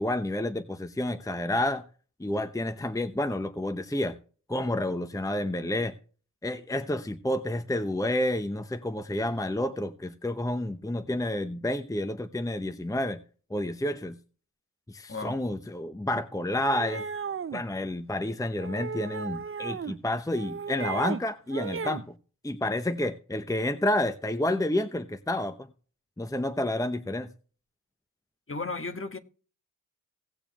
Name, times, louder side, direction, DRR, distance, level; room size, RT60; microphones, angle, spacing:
voice 1, 0.0-1.8 2.2-4.2 4.5-5.9 6.4-13.2 13.5-14.2 14.9-17.0 17.5-22.0 22.4-25.6 26.2-27.3, left 1 dB, 10° left, 0.8 m, -29 dB
voice 2, 15.1-15.6 28.5-29.2, left 3 dB, 40° left, 1.5 m, -35 dB
sound 1, 16.5-17.6 18.6-20.0 20.3-21.2 21.5-22.0, right 6 dB, 40° right, 0.6 m, -35 dB
17.5 x 6.9 x 3.0 m
cardioid pair, 50°, 34 cm